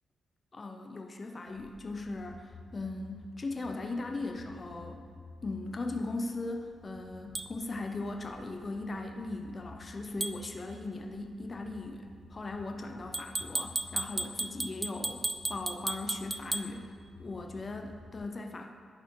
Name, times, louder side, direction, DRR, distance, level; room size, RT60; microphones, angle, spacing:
voice 1, 0.5-5.0 5.4-18.7, left 2 dB, 40° left, 4 dB, 0.6 m, -38 dB
sound 1, 1.4-18.2, left 3 dB, 70° left, 1.4 m, -53 dB
sound 2, 7.3-7.5 10.2-10.4 13.1-16.7, right 2 dB, 25° right, 0.4 m, -34 dB
11.0 x 4.3 x 4.7 m, 2.1 s
cardioid pair, 60°, 0 cm